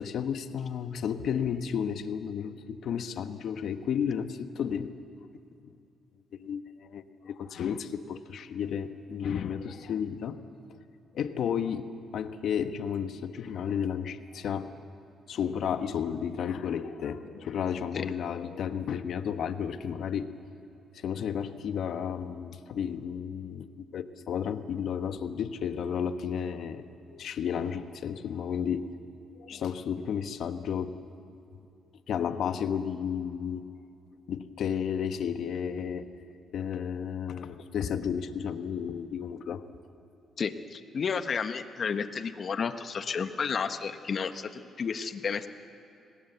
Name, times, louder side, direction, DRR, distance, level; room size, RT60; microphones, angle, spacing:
voice 1, 0.0-4.9 6.3-10.4 11.1-14.7 15.3-20.3 20.9-28.9 29.3-31.0 32.1-33.7 34.3-36.1 36.5-39.6, left 8 dB, 65° left, 10 dB, 1.2 m, -32 dB
voice 2, 40.4-45.5, left 6 dB, 50° left, 10 dB, 1.3 m, -32 dB
26.5 x 19.0 x 8.2 m, 2.6 s
cardioid pair, 90°, 0 cm